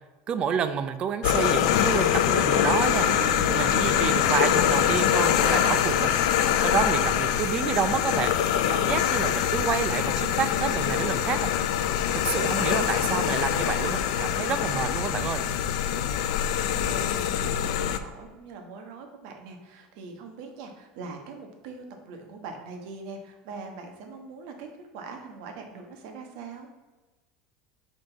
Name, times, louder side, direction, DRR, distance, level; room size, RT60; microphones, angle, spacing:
voice 1, 0.3-3.1 3.5-6.1 6.6-8.3 8.7-11.5 12.1-15.5, right 7 dB, 30° right, 11 dB, 0.4 m, -29 dB
sound 1, 1.2-18.0, left 10 dB, 85° left, 0.5 m, -24 dB
sound 2, 2.4-9.1, right 5 dB, 50° right, 0.9 m, -40 dB
voice 2, 16.7-26.7, right 4 dB, 65° right, 4 dB, 1.3 m, -42 dB
5.6 x 5.2 x 4.0 m, 1.2 s
cardioid pair, 160°, 3 cm